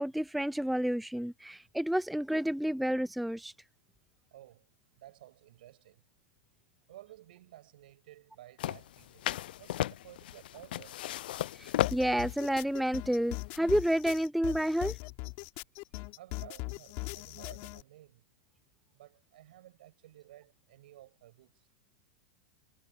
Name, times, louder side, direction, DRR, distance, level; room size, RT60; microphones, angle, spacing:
voice 1, 0.0-3.5 11.6-15.0, equal, ahead, 0.3 m, -30 dB
voice 2, 4.3-4.7 4.9-6.0 6.9-9.3 9.6-11.0 16.2-18.2 18.9-21.5, right 14 dB, 70° right, 7.4 m, -54 dB
sound 1, 8.6-13.9, left 13 dB, 75° left, 0.4 m, -35 dB
sound 2, 11.8-17.8, left 26 dB, 50° left, 3.1 m, -40 dB
hypercardioid pair, 135°, 5 cm